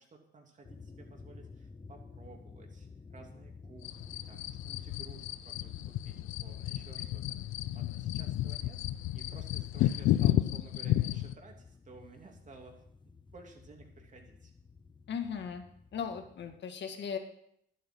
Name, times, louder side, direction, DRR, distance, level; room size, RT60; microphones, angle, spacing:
voice 1, 0.0-8.8 9.1-14.5, right 3 dB, 40° right, 1 dB, 2.9 m, -55 dB
sound 1, 0.6-16.6, left 4 dB, 25° left, 0.9 m, -53 dB
sound 2, 3.8-11.3, left 14 dB, 85° left, 0.6 m, -32 dB
voice 2, 15.1-15.6 15.9-17.2, left 7 dB, 65° left, 6 dB, 1.8 m, -37 dB
11.5 x 8.6 x 6.0 m, 0.74 s
cardioid pair, 90°, 20 cm